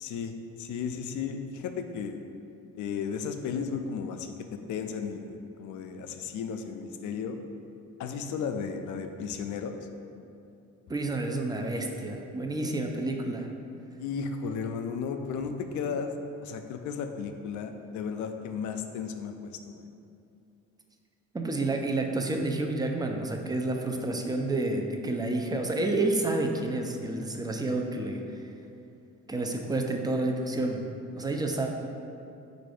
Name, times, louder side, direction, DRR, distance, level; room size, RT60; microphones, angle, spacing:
voice 1, 0.0-2.2 2.8-7.4 8.0-9.8 14.0-16.1 16.4-19.9, left 6 dB, 75° left, 7 dB, 0.4 m, -34 dB
voice 2, 10.9-13.5 21.3-28.2 29.3-30.8 31.1-31.7, right 2 dB, 15° right, 3 dB, 0.4 m, -29 dB
4.2 x 2.6 x 4.8 m, 2.6 s
cardioid pair, 90°, 30 cm